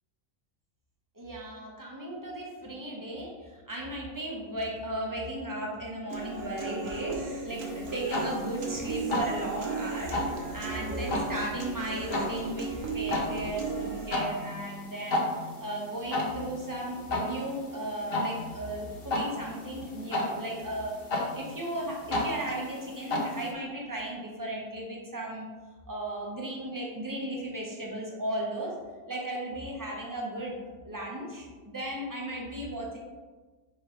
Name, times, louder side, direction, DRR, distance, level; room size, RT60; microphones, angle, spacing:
voice 1, 1.1-15.2 15.6-21.0 21.3-25.5 25.9-28.7 29.1-33.0, right 1 dB, 15° right, -2 dB, 1.0 m, -36 dB
Human voice / Acoustic guitar, 6.1-14.1, right 4 dB, 65° right, 1.2 m, -36 dB
sound 1, 7.5-23.5, left 1 dB, 45° left, 1.1 m, -35 dB
6.3 x 4.7 x 3.1 m, 1.4 s
omnidirectional pair, 1.5 m